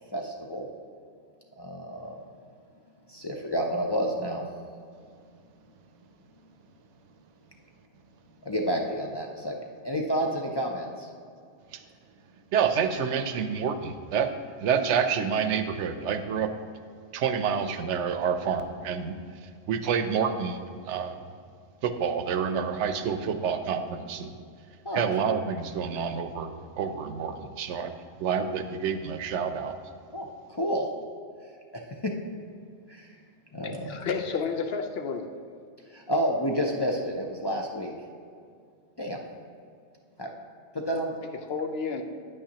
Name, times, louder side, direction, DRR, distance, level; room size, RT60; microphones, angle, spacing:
voice 1, 0.1-0.7 1.6-2.2 3.1-4.4 8.4-9.5 9.8-11.1 24.8-25.0 30.1-30.9 31.7-32.1 32.9-33.2 33.5-34.1 35.8-37.9 39.0-39.2 40.2-40.3 40.7-41.2, equal, 35° left, -1 dB, 0.4 m, -30 dB
voice 2, 12.5-16.5 17.1-20.6 20.9-21.2 21.8-24.3 24.9-29.8, right 7 dB, 85° right, 9 dB, 0.9 m, -28 dB
voice 3, 33.9-35.3 41.5-42.0, left 5 dB, 65° left, 5 dB, 0.8 m, -30 dB
9.5 x 8.6 x 2.9 m, 2.3 s
omnidirectional pair, 1.2 m